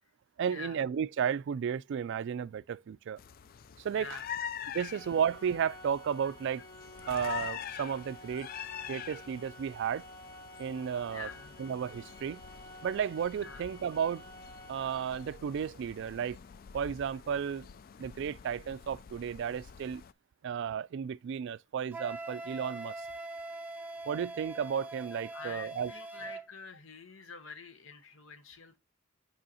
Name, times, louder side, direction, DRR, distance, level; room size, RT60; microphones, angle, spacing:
voice 1, 0.4-3.2 3.8-4.2 4.7-6.6 7.1-8.5 8.9-10.1 10.6-11.3 11.6-12.4 12.8-14.2 14.7-16.4 16.7-17.7 18.0-20.0 20.4-23.0 24.1-25.9, right 7 dB, 60° right, 0.3 m, -33 dB
sound 1, 3.2-20.1, left 8 dB, 45° left, 0.3 m, -45 dB
voice 2, 3.9-4.2 4.6-4.8 11.1-11.5 13.4-13.6 25.1-28.8, left 4 dB, 70° left, 1.1 m, -46 dB
Organ, 4.9-15.6, left 1 dB, 25° left, 1.9 m, -52 dB
Wind instrument woodwind instrument, 21.9-26.5, right 2 dB, 10° right, 0.6 m, -42 dB
7.7 x 5.5 x 2.7 m
head